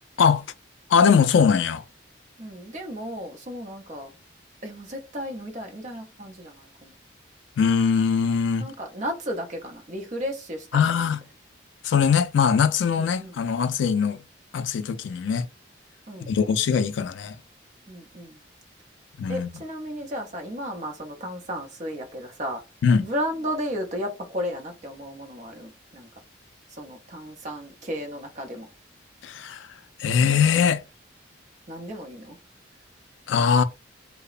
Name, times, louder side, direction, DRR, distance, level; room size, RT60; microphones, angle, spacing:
voice 1, 0.9-1.8 7.6-8.7 10.7-11.2 11.8-14.2 14.5-15.5 16.2-17.4 19.2-19.5 22.8-23.1 29.2-29.7 30.0-30.8 33.3-33.6, left 6 dB, 70° left, 0.3 m, -21 dB
voice 2, 2.4-4.1 4.6-6.9 8.6-11.1 13.0-13.3 16.1-16.6 17.9-18.4 19.3-22.6 23.0-26.1 26.7-28.7 31.7-32.4, equal, 40° right, 0.6 m, -34 dB
2.8 x 2.0 x 2.4 m
head